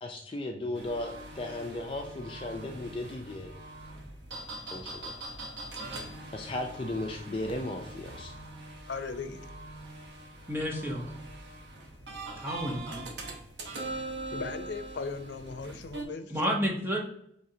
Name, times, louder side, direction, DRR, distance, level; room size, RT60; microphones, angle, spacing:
voice 1, 0.0-3.5 4.7-5.1 6.3-8.4, left 1 dB, 30° left, 2 dB, 0.4 m, -36 dB
sound 1, 0.7-16.0, right 2 dB, 80° right, 0.8 m, -42 dB
voice 2, 8.9-9.5 14.3-16.3, left 4 dB, 85° left, 9 dB, 0.5 m, -37 dB
voice 3, 10.5-11.2 12.4-13.1 16.3-17.0, equal, 15° right, 0 dB, 0.7 m, -31 dB
5.0 x 3.2 x 2.7 m, 0.72 s
head